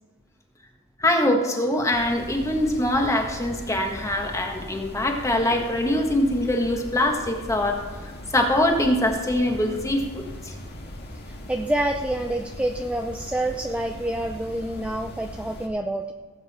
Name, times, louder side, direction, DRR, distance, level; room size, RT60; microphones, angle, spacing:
voice 1, 1.0-7.8 8.3-10.5, left 1 dB, 15° left, 2 dB, 1.6 m, -23 dB
sound 1, 1.9-15.7, left 1 dB, 50° left, 1.8 m, -39 dB
voice 2, 11.3-16.0, right 1 dB, 5° right, 4 dB, 0.5 m, -27 dB
17.5 x 8.2 x 4.4 m, 1.4 s
head